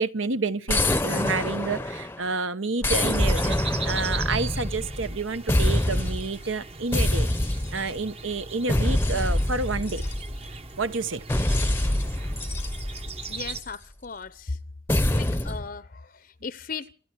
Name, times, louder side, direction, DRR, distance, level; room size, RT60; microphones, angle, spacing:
voice 1, 0.0-7.3 7.7-10.0 10.8-11.2, right 3 dB, 80° right, 1.2 m, -29 dB
sound 1, 0.7-2.3 2.8-5.2 5.5-6.3 6.9-8.0 8.7-10.6 11.3-13.7 14.9-15.6, left 1 dB, 10° left, 0.8 m, -25 dB
sound 2, 2.9-13.6, right 4 dB, 30° right, 0.9 m, -39 dB
voice 2, 13.3-14.6 15.1-16.9, left 4 dB, 45° left, 0.7 m, -36 dB
26.5 x 11.0 x 4.6 m
head